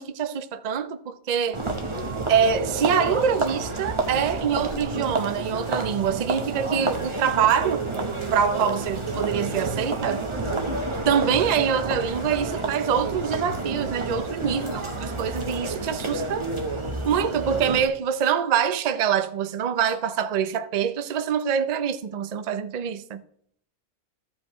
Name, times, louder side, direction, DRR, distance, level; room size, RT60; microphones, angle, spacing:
voice 1, 0.0-1.6 2.3-7.8 8.3-10.2 11.1-16.5 17.0-23.2, right 8 dB, 60° right, 0.4 m, -25 dB
sound 1, 1.5-17.9, right 3 dB, 25° right, 0.9 m, -29 dB
Wind instrument woodwind instrument, 10.0-12.9 13.2-16.6, left 5 dB, 60° left, 1.2 m, -45 dB
15.5 x 5.2 x 3.1 m
omnidirectional pair, 1.5 m